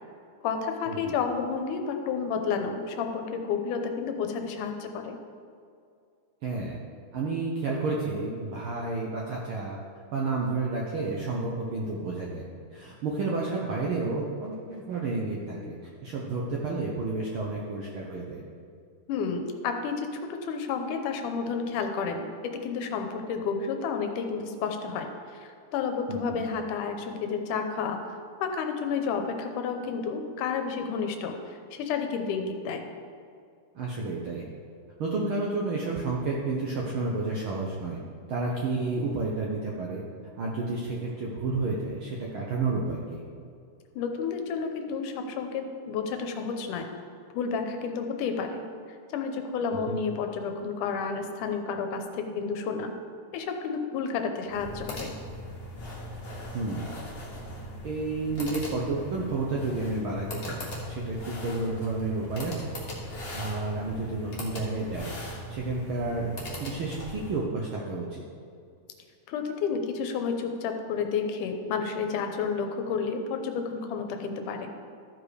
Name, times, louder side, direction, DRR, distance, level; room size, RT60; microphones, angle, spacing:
voice 1, 0.4-5.2 19.1-28.0 28.4-32.8 44.0-46.9 47.3-48.7 49.1-52.9 53.3-55.1 69.3-74.7, left 5 dB, 85° left, 5 dB, 2.3 m, -31 dB
voice 2, 6.4-6.8 7.1-9.8 10.1-12.4 12.7-15.8 16.0-18.4 26.1-26.4 33.7-34.4 35.0-38.0 38.3-40.0 40.4-43.2 49.8-50.0 56.5-56.9 57.8-62.7 63.3-65.1 65.5-66.3 66.6-68.2, right 3 dB, 80° right, -3 dB, 1.2 m, -31 dB
sound 1, 54.5-67.4, equal, 30° left, 1.2 m, -39 dB
14.0 x 5.1 x 4.9 m, 2.3 s
omnidirectional pair, 3.6 m